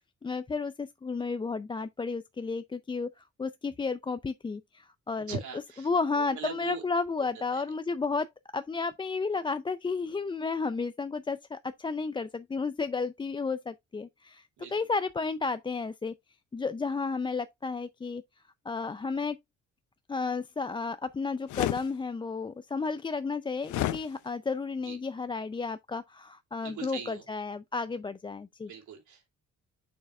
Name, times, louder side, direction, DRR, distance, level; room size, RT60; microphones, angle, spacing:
voice 1, 0.0-5.4 5.8-16.1 16.5-18.2 18.7-19.4 20.1-28.7, left 4 dB, 15° left, 0.4 m, -32 dB
voice 2, 5.3-5.9 6.2-6.8 7.5-7.6 14.6-14.7 24.8-25.0 26.6-27.2 28.7-29.3, right 6 dB, 75° right, 2.7 m, -40 dB
sound 1, 21.5-21.8 23.7-24.0, left 14 dB, 75° left, 0.6 m, -29 dB
6.8 x 6.5 x 2.3 m
cardioid pair, 90°, 30 cm